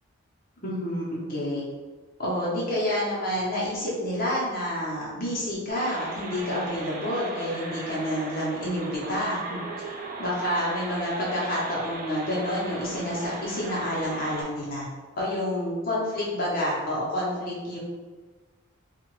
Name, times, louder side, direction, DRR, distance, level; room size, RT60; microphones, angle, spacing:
voice 1, 0.6-1.7 2.2-9.6 10.2-14.9 15.2-17.8, equal, 40° left, -6 dB, 0.9 m, -29 dB
sound 1, 5.7-14.4, right 2 dB, 40° right, 0.4 m, -38 dB
2.8 x 2.5 x 3.0 m, 1.4 s
head